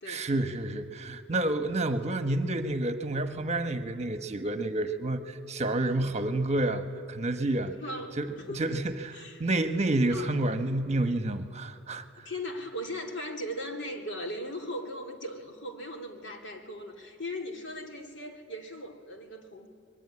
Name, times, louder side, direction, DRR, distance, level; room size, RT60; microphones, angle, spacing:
voice 1, 0.1-7.8 8.2-8.3 8.5-12.3, right 2 dB, 35° right, 8 dB, 1.2 m, -29 dB
voice 2, 7.8-8.8 9.1-9.8 10.1-10.3 12.2-19.7, left 1 dB, 60° left, 3 dB, 2.8 m, -38 dB
25.5 x 22.5 x 9.8 m, 2.7 s
head